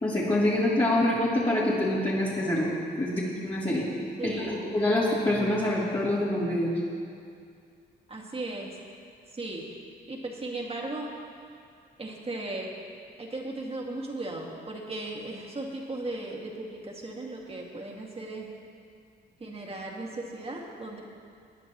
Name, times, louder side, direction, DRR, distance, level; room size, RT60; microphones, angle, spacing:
voice 1, 0.0-2.7 3.0-3.8 4.2-4.4 4.7-6.7, left 1 dB, 30° left, -10 dB, 3.2 m, -25 dB
voice 2, 4.2-4.6 8.1-8.7 9.3-9.7 10.1-11.1 12.0-12.7 13.2-18.5 19.4-21.0, right 2 dB, 30° right, -1 dB, 2.2 m, -36 dB
19.5 x 10.5 x 3.1 m, 2.3 s
cardioid pair, 70°, 19 cm